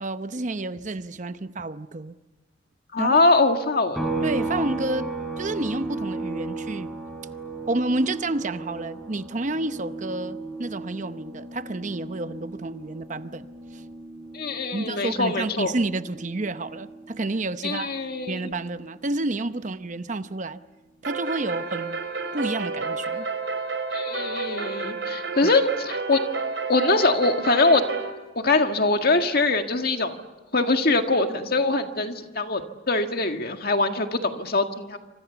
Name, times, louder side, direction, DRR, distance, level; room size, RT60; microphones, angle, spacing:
voice 1, 0.0-2.1 3.0-3.3 4.2-5.1 5.4-6.9 7.7-13.5 13.7-13.8 14.7-17.9 18.3-20.6 21.0-22.0 22.3-23.3 25.4-25.5, right 2 dB, 40° right, 11 dB, 0.8 m, -30 dB
voice 2, 2.9-4.0 14.3-15.7 17.6-18.5 23.9-26.2 26.7-27.8 28.4-30.1 30.5-32.6 32.9-35.0, left 3 dB, 50° left, 5 dB, 1.9 m, -23 dB
sound 1, 3.9-17.5 17.8-20.0, right 3 dB, ahead, 4.3 m, -35 dB
sound 2, 21.0-28.1, right 4 dB, 75° right, 3.7 m, -30 dB
28.0 x 26.0 x 7.1 m, 1.2 s
head